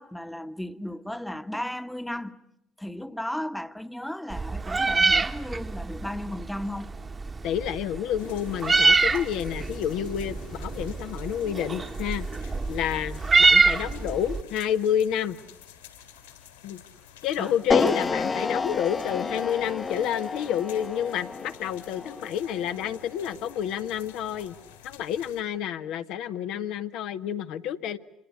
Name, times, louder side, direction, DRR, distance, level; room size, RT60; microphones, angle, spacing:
voice 1, 0.0-2.4 2.8-6.9 17.4-18.0, left 1 dB, 5° left, 1.2 m, -35 dB
Meow, 4.3-14.4, right 4 dB, 30° right, 1.4 m, -25 dB
voice 2, 7.4-15.4 16.6-16.8 17.2-24.5 24.8-28.0, left 9 dB, 65° left, 0.9 m, -29 dB
sound 1, 8.2-25.4, left 9 dB, 80° left, 3.8 m, -51 dB
sound 2, 17.7-23.9, left 4 dB, 30° left, 1.0 m, -30 dB
26.0 x 22.5 x 8.3 m
figure-of-eight pair, 50°, 0 cm